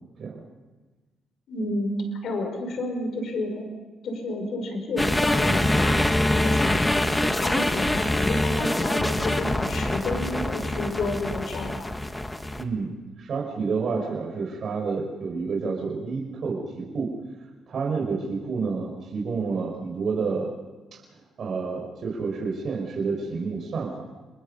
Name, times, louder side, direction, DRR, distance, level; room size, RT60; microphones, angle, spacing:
voice 1, 1.5-3.7 4.0-11.9, left 2 dB, 65° left, 4 dB, 5.9 m, -31 dB
sound 1, 5.0-12.6, left 1 dB, 10° left, 1.5 m, -24 dB
voice 2, 12.6-17.1 17.7-20.5 20.9-21.0 21.4-24.0, right 4 dB, 55° right, -1 dB, 5.3 m, -29 dB
29.0 x 21.5 x 5.5 m, 1.2 s
cardioid pair, 90°, 0 cm